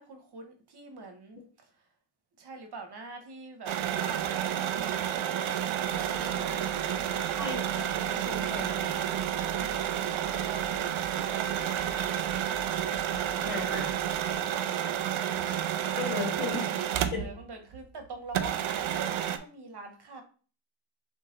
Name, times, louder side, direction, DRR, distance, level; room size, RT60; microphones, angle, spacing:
voice 1, 0.0-1.9 2.4-7.3 8.6-12.5 15.7-20.2, right 3 dB, 55° right, 0.9 m, -46 dB
sound 1, 3.7-17.4 17.7-17.8 18.3-19.4, right 10 dB, 85° right, 0.6 m, -30 dB
Gull seagull, 5.8-14.4, right 2 dB, ahead, 1.6 m, -49 dB
voice 2, 7.4-8.9 13.1-13.9 16.0-16.7 16.9-17.2, left 4 dB, 40° left, 2.0 m, -36 dB
3.8 x 3.5 x 3.8 m
wide cardioid pair, 115°, 47 cm